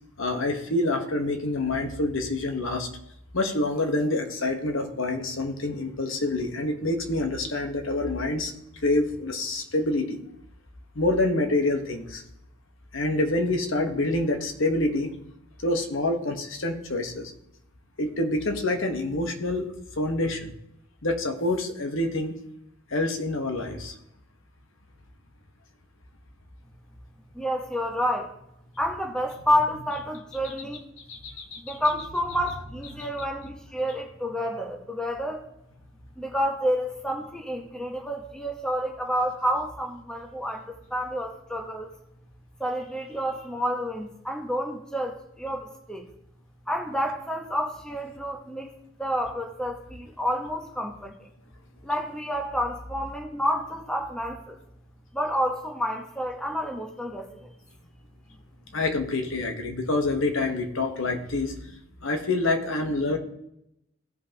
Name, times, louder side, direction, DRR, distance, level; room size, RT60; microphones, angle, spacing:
voice 1, 0.2-2.9 3.3-8.5 8.8-10.2 10.9-12.2 12.9-15.1 15.6-17.3 18.0-19.7 20.0-20.5 21.0-22.3 22.9-23.9 31.1-31.8 33.0-33.1 58.7-63.2, left 2 dB, 70° left, 4 dB, 1.2 m, -27 dB
voice 2, 27.3-28.3 28.8-30.9 31.6-35.4 36.2-41.9 42.6-46.1 46.7-48.7 49.0-51.3 51.8-54.6 55.1-57.5, equal, 5° left, 2 dB, 1.0 m, -29 dB
16.0 x 5.5 x 2.9 m, 0.79 s
head